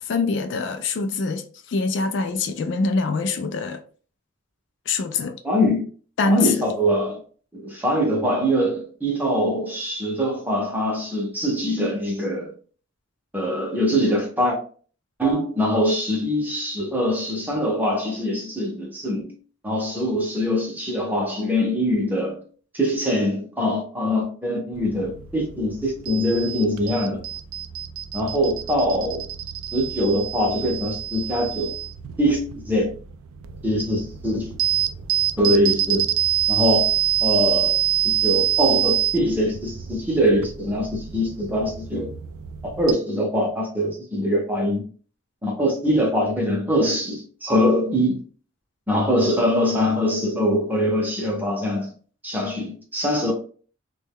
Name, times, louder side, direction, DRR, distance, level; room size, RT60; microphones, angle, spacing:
voice 1, 0.0-3.8 4.9-5.4 6.2-6.7, left 3 dB, 55° left, 0.3 m, -24 dB
voice 2, 5.4-5.9 6.3-7.2 7.5-12.5 13.3-14.6 15.2-19.3 19.6-22.4 22.7-27.2 28.1-29.2 29.7-31.7 32.2-32.9 33.6-34.5 35.4-36.0 36.5-36.9 37.2-37.8 38.0-42.1 42.6-44.8 45.4-48.2 48.9-51.9 52.2-53.3, equal, 10° right, 0.7 m, -23 dB
sound 1, 24.7-42.9, right 12 dB, 85° right, 0.3 m, -26 dB
3.1 x 2.2 x 3.4 m
head